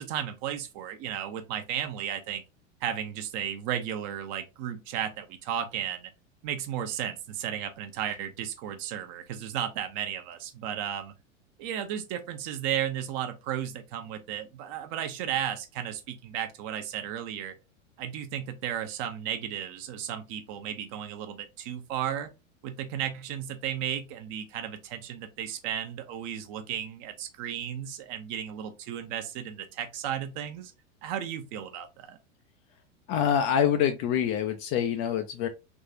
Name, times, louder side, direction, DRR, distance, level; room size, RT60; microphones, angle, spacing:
voice 1, 0.0-2.4 2.8-6.1 6.4-11.1 11.6-17.5 18.0-22.3 22.6-30.7 31.0-32.2, right 10 dB, 45° right, 0.7 m, -34 dB
voice 2, 33.1-35.5, left 9 dB, 30° left, 0.4 m, -25 dB
3.6 x 2.4 x 2.7 m
hypercardioid pair, 95°, 39 cm